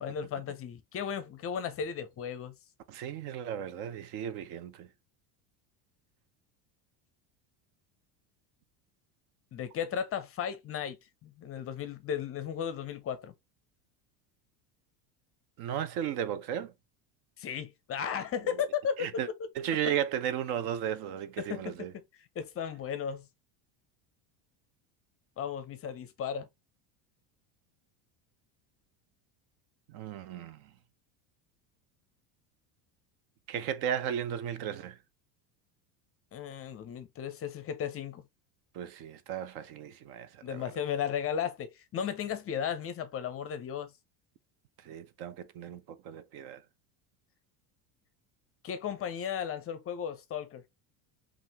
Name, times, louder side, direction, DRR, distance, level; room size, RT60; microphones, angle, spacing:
voice 1, 0.0-2.5 9.5-13.3 17.4-19.1 21.4-21.9 22.4-23.2 25.4-26.5 36.3-38.2 40.4-43.9 48.6-50.6, left 8 dB, 30° left, 0.5 m, -35 dB
voice 2, 2.9-4.9 15.6-16.7 18.4-18.6 19.0-19.3 19.6-21.9 29.9-30.7 33.5-35.0 38.7-40.7 44.8-46.6, right 9 dB, 55° right, 0.6 m, -35 dB
5.5 x 2.5 x 2.9 m
cardioid pair, 140°, 46 cm